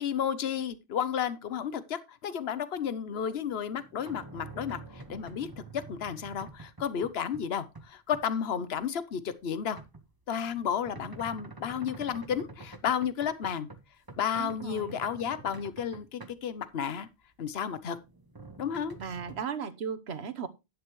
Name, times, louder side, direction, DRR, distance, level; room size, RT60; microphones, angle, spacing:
voice 1, 0.0-5.5 5.9-9.8 10.3-13.7 14.2-17.1 17.4-18.0 18.6-19.0, left 8 dB, 75° left, 1.1 m, -32 dB
sound 1, 3.4-7.5 7.7-8.3 8.8-16.7 17.3-19.4, right 3 dB, 20° right, 1.0 m, -48 dB
voice 2, 14.4-15.0 19.0-20.5, right 6 dB, 80° right, 1.3 m, -36 dB
11.0 x 9.5 x 3.1 m
omnidirectional pair, 1.1 m